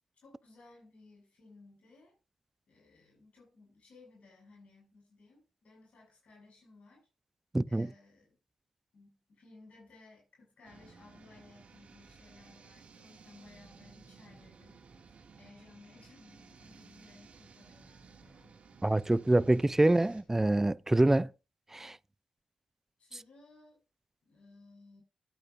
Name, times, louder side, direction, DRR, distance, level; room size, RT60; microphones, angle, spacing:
voice 1, 0.2-2.1 2.7-7.1 7.7-8.4 8.9-18.6 19.8-20.3 23.0-23.8 24.2-25.0, left 3 dB, 60° left, 6.9 m, -59 dB
voice 2, 7.5-7.9 18.8-21.3 21.7-22.0, right 2 dB, 15° right, 0.5 m, -25 dB
sound 1, 10.6-20.2, right 5 dB, 60° right, 2.4 m, -56 dB
19.5 x 9.0 x 2.7 m
supercardioid pair, 45°, 2 cm